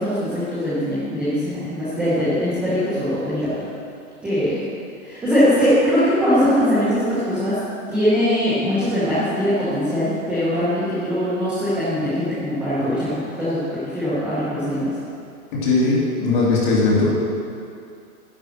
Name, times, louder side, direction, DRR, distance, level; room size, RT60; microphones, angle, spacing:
voice 1, 0.0-3.6 4.2-4.6 5.1-7.6 7.9-14.9, equal, 5° right, -14 dB, 0.9 m, -21 dB
voice 2, 15.5-17.1, left 3 dB, 30° left, -6 dB, 2.9 m, -19 dB
10.5 x 6.4 x 7.9 m, 2.4 s
hypercardioid pair, 170°, 44 cm